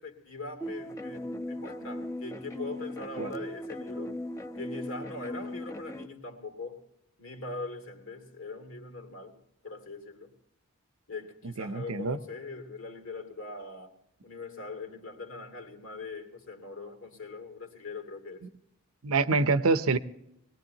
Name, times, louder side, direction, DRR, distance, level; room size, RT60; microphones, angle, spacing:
voice 1, 0.0-4.1 4.6-6.8 7.2-9.4 9.6-10.3 11.1-13.9 14.2-18.5, left 3 dB, 65° left, 4 dB, 2.6 m, -41 dB
sound 1, 0.6-6.1, left 1 dB, 15° left, 0.7 m, -38 dB
voice 2, 11.4-12.2 19.0-20.0, right 3 dB, 80° right, 13 dB, 0.7 m, -26 dB
22.0 x 18.5 x 2.9 m, 0.82 s
head